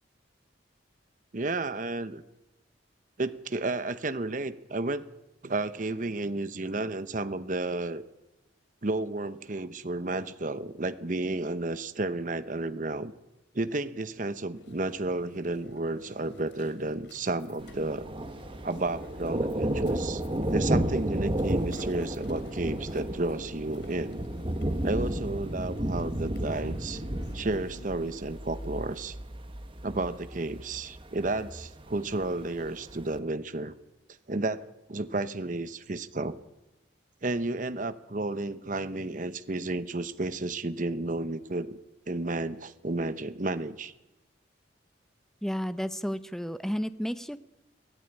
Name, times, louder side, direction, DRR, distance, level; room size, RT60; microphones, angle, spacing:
voice 1, 1.3-2.2 3.2-5.0 5.4-8.0 8.8-13.1 13.5-18.1 18.6-20.2 20.5-24.2 24.8-27.0 27.3-29.2 29.8-33.7 34.3-36.4 37.2-41.8 42.1-43.9, right 2 dB, 45° right, 12 dB, 0.9 m, -32 dB
sound 1, 14.5-29.0, left 1 dB, 70° left, 3.1 m, -53 dB
Thunder, 17.6-33.2, right 1 dB, 30° right, 1.3 m, -33 dB
voice 2, 45.4-47.4, equal, ahead, 12 dB, 0.8 m, -32 dB
23.0 x 14.5 x 10.0 m, 1.0 s
head